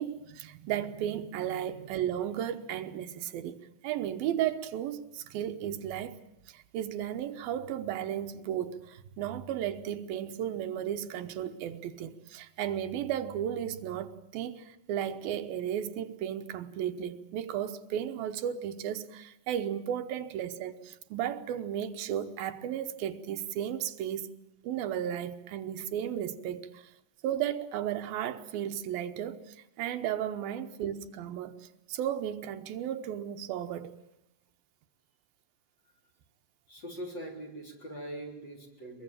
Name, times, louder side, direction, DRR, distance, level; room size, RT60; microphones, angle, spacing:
voice 1, 0.0-6.2 6.5-24.3 24.6-26.9 27.2-31.5 31.9-33.9, right 10 dB, 85° right, 2.9 m, -34 dB
voice 2, 36.7-39.0, right 1 dB, 30° left, 4.2 m, -42 dB
23.0 x 22.0 x 8.9 m
omnidirectional pair, 4.1 m